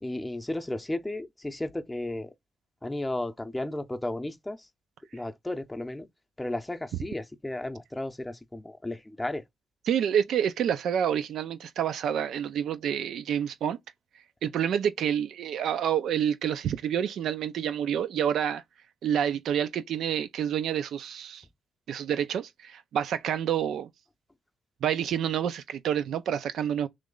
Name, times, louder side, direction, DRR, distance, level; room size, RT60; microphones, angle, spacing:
voice 1, 0.0-2.3 2.8-4.6 5.1-6.1 6.4-9.4, left 1 dB, 10° left, 0.7 m, -34 dB
voice 2, 9.9-13.8 14.4-18.6 19.0-21.4 21.9-23.9 24.8-26.9, right 9 dB, 70° right, 0.6 m, -28 dB
3.2 x 3.1 x 3.8 m
cardioid pair, 90°, 0 cm